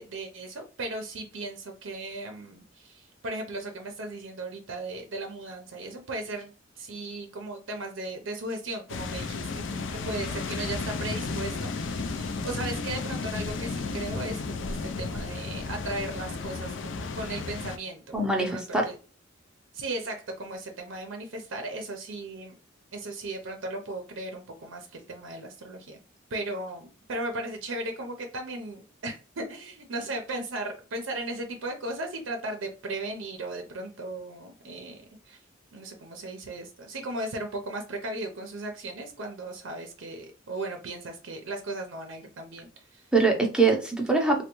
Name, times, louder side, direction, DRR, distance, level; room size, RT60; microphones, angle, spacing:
voice 1, 0.0-19.0 19.7-22.6 22.9-26.0 26.3-35.4 35.7-43.1, right 2 dB, 80° right, 4 dB, 0.6 m, -36 dB
sound 1, 8.9-17.8, left 4 dB, 65° left, 0.4 m, -33 dB
voice 2, 18.1-18.8 43.1-44.4, right 3 dB, 5° right, 1 dB, 0.6 m, -23 dB
3.3 x 2.2 x 2.9 m, 0.35 s
head